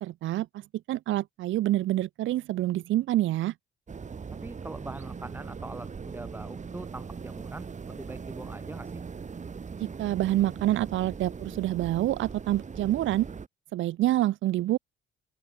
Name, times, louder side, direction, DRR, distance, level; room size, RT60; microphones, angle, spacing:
voice 1, 0.0-3.5 9.8-13.3 13.7-14.8, right 14 dB, 80° right, 0.8 m, -27 dB
sound 1, 3.9-13.5, right 5 dB, 35° right, 3.3 m, -40 dB
voice 2, 4.4-9.0, right 2 dB, 10° right, 1.0 m, -42 dB
open air
cardioid pair, 90°, 20 cm